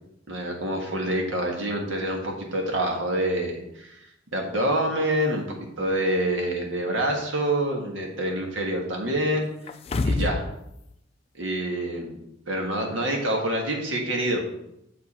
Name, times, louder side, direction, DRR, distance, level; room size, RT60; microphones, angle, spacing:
voice 1, 0.3-4.0 4.3-9.4 10.0-10.4 11.4-12.1 12.5-14.5, right 1 dB, 80° right, 1 dB, 1.5 m, -26 dB
sound 1, 9.7-10.5 10.9-11.0, left 3 dB, 30° left, 0.3 m, -26 dB
6.8 x 5.2 x 4.2 m, 0.80 s
head